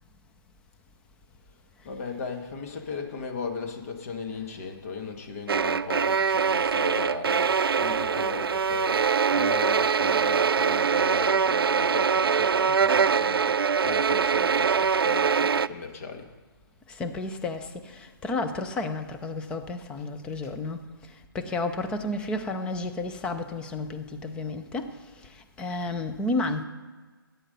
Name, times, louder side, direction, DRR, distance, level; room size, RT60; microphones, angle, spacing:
voice 1, 1.8-13.6 13.8-16.3 20.4-20.5, left 5 dB, 40° left, 4 dB, 1.7 m, -37 dB
sound 1, 5.5-15.7, right 6 dB, 85° right, 0.4 m, -23 dB
voice 2, 16.9-20.8 21.3-25.0 25.6-26.6, left 2 dB, 10° left, 7 dB, 0.6 m, -31 dB
13.5 x 9.4 x 5.4 m, 1.3 s
hypercardioid pair, 155°, 12 cm